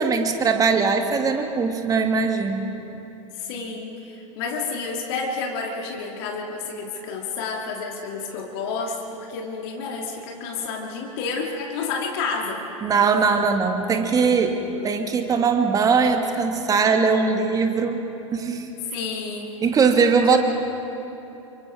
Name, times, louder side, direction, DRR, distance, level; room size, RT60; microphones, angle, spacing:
voice 1, 0.0-2.7 12.8-14.6 14.8-18.0 18.3-18.7 19.6-20.4, right 5 dB, 20° right, 5 dB, 1.9 m, -20 dB
voice 2, 3.4-12.7 18.9-19.5 20.3-20.4, left 4 dB, 50° left, 1 dB, 2.2 m, -30 dB
29.0 x 25.0 x 3.6 m, 3.0 s
figure-of-eight pair, 90°, 17 cm